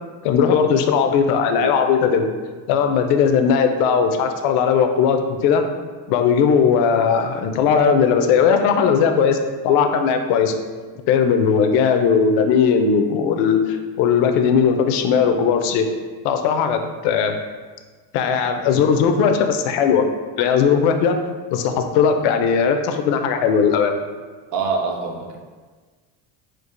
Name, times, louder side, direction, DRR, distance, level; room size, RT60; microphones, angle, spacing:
voice 1, 0.2-2.3 2.7-5.6 6.1-9.4 9.6-10.5 11.1-15.9 16.2-17.3 18.1-20.1 20.4-21.2 21.5-23.9, left 6 dB, 65° left, 6 dB, 0.5 m, -18 dB
voice 2, 24.5-25.4, right 4 dB, 40° right, 1 dB, 0.4 m, -24 dB
4.5 x 2.4 x 2.5 m, 1.4 s
cardioid pair, 135°, 48 cm